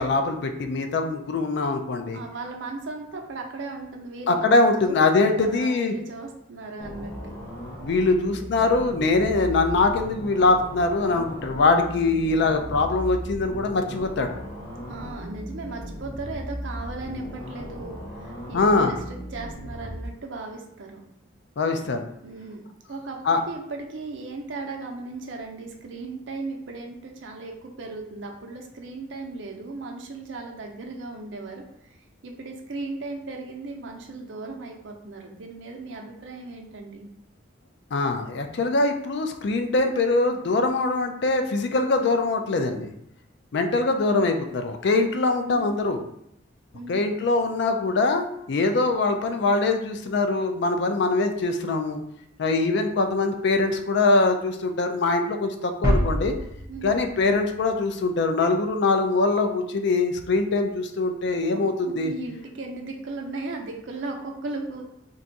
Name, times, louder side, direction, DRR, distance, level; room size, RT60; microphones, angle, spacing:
voice 1, 0.0-2.2 4.3-5.9 7.8-14.3 18.5-18.9 21.6-22.0 23.3-23.4 37.9-42.9 43.5-46.0 46.9-52.0 52.4-56.3 56.8-62.1, left 3 dB, 60° left, 6 dB, 0.4 m, -23 dB
voice 2, 2.1-4.4 4.8-5.0 5.4-7.4 14.9-21.0 22.2-31.9 32.2-37.1 45.5-45.7 46.7-47.0 56.7-57.1 61.5-64.8, right 3 dB, 65° right, 2 dB, 0.6 m, -37 dB
sound 1, 6.8-20.1, equal, 15° left, 0.8 m, -37 dB
sound 2, 55.8-58.5, equal, 15° right, 0.5 m, -27 dB
2.6 x 2.3 x 3.9 m, 0.78 s
head